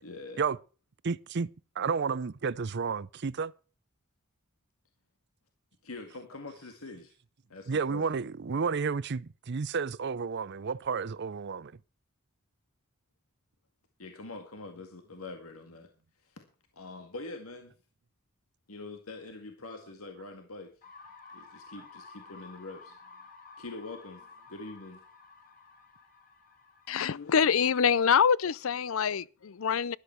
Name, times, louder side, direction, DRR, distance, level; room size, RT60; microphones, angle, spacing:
voice 1, 0.0-0.4 5.8-7.1 7.5-8.2 14.0-15.9 16.2-16.5 16.7-17.7 18.7-20.7 21.3-23.0 23.6-24.2 24.5-25.0, left 2 dB, 90° left, 1.9 m, -44 dB
voice 2, 1.0-1.5 1.8-3.5 7.7-11.7, right 5 dB, 55° right, 0.5 m, -31 dB
sound 1, 20.8-28.7, left 4 dB, 40° left, 4.8 m, -53 dB
voice 3, 26.9-30.0, left 7 dB, 70° left, 0.5 m, -25 dB
13.0 x 11.5 x 4.5 m
head